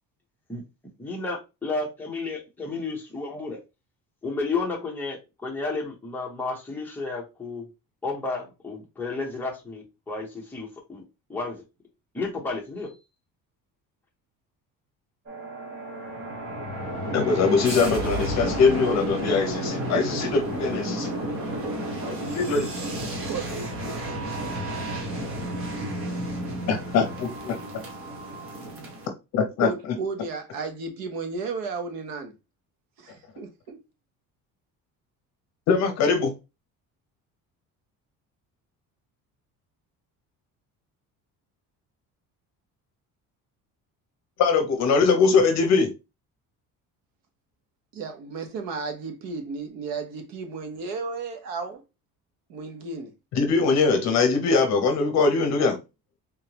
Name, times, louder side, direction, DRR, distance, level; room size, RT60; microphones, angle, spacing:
voice 1, 1.0-3.6 4.2-7.6 8.0-11.0 11.3-11.6 12.1-12.9, left 3 dB, 5° left, 0.9 m, -32 dB
sound 1, 15.3-29.1, right 1 dB, 40° right, 1.2 m, -31 dB
voice 2, 17.1-21.1 22.1-22.7 26.7-27.6 29.3-29.7 35.7-36.3 44.4-45.9 53.3-55.8, left 4 dB, 50° left, 0.8 m, -22 dB
voice 3, 29.6-32.3 33.0-33.8 47.9-51.8 52.5-53.1, right 4 dB, 85° right, 1.1 m, -33 dB
3.7 x 3.3 x 2.9 m
cardioid pair, 175°, 34 cm